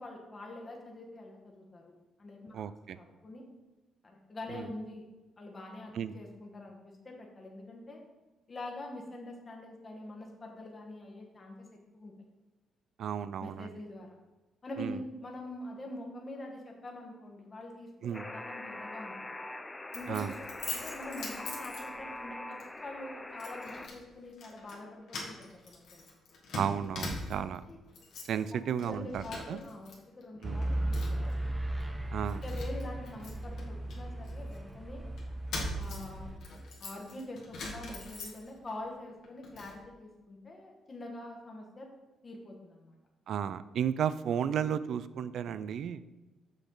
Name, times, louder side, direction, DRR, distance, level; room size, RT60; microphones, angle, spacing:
voice 1, 0.0-1.9 2.2-2.6 2.9-3.4 4.0-5.0 5.4-8.0 8.5-11.7 11.9-12.1 13.4-14.1 14.6-19.1 19.9-26.0 27.7-27.8 28.8-31.5 32.4-35.1 35.7-36.3 36.8-41.9 42.2-42.9, left 1 dB, 35° left, 0 dB, 1.2 m, -45 dB
voice 2, 2.5-3.0 4.5-4.7 5.9-6.1 13.0-13.7 14.8-15.0 18.0-18.3 20.1-20.3 26.5-27.6 28.3-29.6 30.4-30.6 32.1-32.4 43.3-46.0, right 8 dB, 70° right, 15 dB, 0.3 m, -33 dB
Alarm, 18.1-23.9, left 2 dB, 15° left, 0.5 m, -43 dB
Keys jangling, 19.9-22.2 22.6-22.8 23.4-24.0 24.3-24.8 25.1-27.6 27.9-28.4 28.7-29.9 30.2-31.3 31.8-31.9 32.2-34.6 35.2-38.7 39.1-39.8, left 2 dB, 70° left, 1.6 m, -42 dB
sound 1, 30.4-36.4, right 1 dB, 15° right, 0.7 m, -36 dB
6.5 x 6.2 x 3.8 m, 1.1 s
cardioid pair, 90°, 0 cm